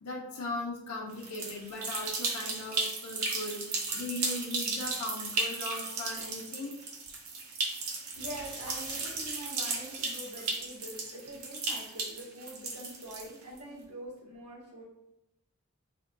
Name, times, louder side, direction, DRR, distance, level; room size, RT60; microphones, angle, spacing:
voice 1, 0.0-3.6 3.9-6.8, left 2 dB, 85° left, -2 dB, 0.6 m, -38 dB
sound 1, 1.1-13.6, right 3 dB, 70° right, 0.7 m, -35 dB
sound 2, 8.1-10.8 13.1-13.2, right 2 dB, 50° right, 1.2 m, -47 dB
voice 2, 8.2-14.8, right 1 dB, 90° right, -4 dB, 1.4 m, -44 dB
3.6 x 2.2 x 3.5 m, 0.88 s
head